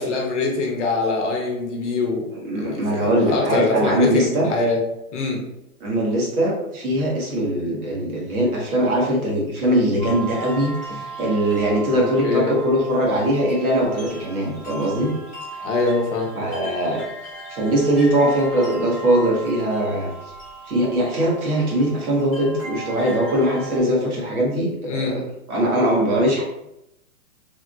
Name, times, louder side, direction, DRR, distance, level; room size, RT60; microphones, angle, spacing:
voice 1, 0.0-2.3 2.5-4.8 5.1-5.4 12.0-12.5 15.6-16.3 24.9-25.2, left 3 dB, 50° left, 0 dB, 0.8 m, -23 dB
voice 2, 2.4-4.5 5.8-15.1 16.3-17.0 17.5-20.1 20.7-25.2 25.5-26.4, right 1 dB, 70° right, -2 dB, 1.4 m, -21 dB
sound 1, 10.0-23.8, right 3 dB, 5° right, 0.5 m, -37 dB
3.6 x 2.5 x 2.3 m, 0.85 s
hypercardioid pair, 170°, 45 cm